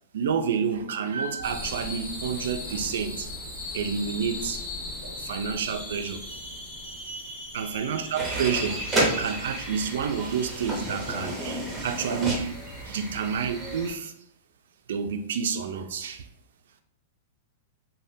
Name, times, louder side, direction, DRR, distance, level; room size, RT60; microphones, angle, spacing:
voice 1, 0.1-3.3 3.7-4.6 5.0-6.2 7.5-8.8 9.2-12.5 12.8-14.1 14.9-16.3, right 6 dB, 75° right, 7 dB, 0.3 m, -29 dB
sound 1, 1.4-13.0, left 2 dB, 20° left, 1.1 m, -39 dB
sound 2, 8.2-13.9, right 1 dB, 10° right, 0.6 m, -31 dB
3.4 x 2.1 x 2.6 m, 0.74 s
supercardioid pair, 160°, 0 cm